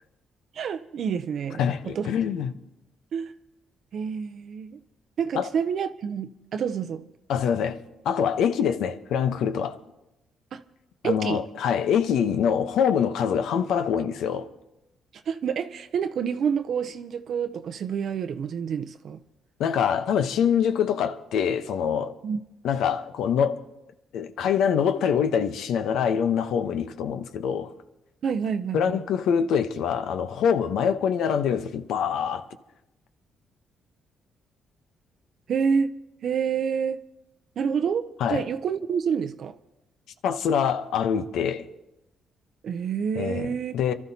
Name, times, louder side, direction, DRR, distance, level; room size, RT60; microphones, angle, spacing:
voice 1, 0.5-2.1 3.1-3.3 3.9-4.8 5.2-7.0 10.5-10.6 11.0-11.4 15.3-19.2 22.2-22.4 28.2-29.0 35.5-35.9 36.2-37.0 37.6-39.6 42.6-43.8, right 7 dB, 60° right, 0.6 m, -28 dB
voice 2, 1.6-2.5 5.3-5.5 7.3-7.8 8.0-9.8 11.0-14.5 19.6-22.1 22.6-23.6 24.1-27.7 28.7-32.5 38.2-38.4 40.2-41.7 43.1-43.9, left 7 dB, 80° left, 0.8 m, -25 dB
29.0 x 13.0 x 2.8 m
cardioid pair, 90°, 0 cm